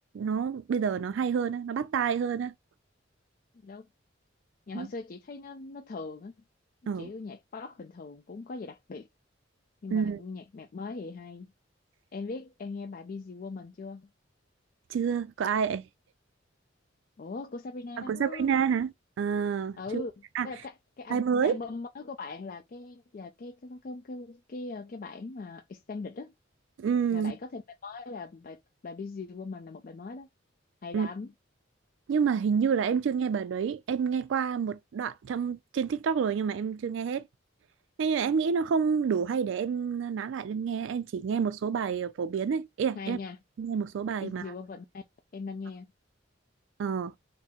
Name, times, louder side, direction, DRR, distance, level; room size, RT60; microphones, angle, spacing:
voice 1, 0.1-2.5 4.7-4.9 6.9-7.1 9.9-10.2 14.9-15.8 18.0-20.0 20.3-20.5 21.1-21.6 26.8-27.3 30.9-31.1 32.1-37.2 38.0-43.2 43.6-44.4 46.8-47.1, right 6 dB, 75° right, 0.3 m, -28 dB
voice 2, 4.7-6.3 7.0-9.1 9.8-11.5 12.1-14.1 17.2-18.5 19.8-20.1 20.4-26.3 27.1-30.3 30.8-31.3 42.9-43.4 44.2-45.0 45.3-45.9, left 3 dB, 45° left, 0.4 m, -40 dB
3.6 x 2.0 x 4.2 m
head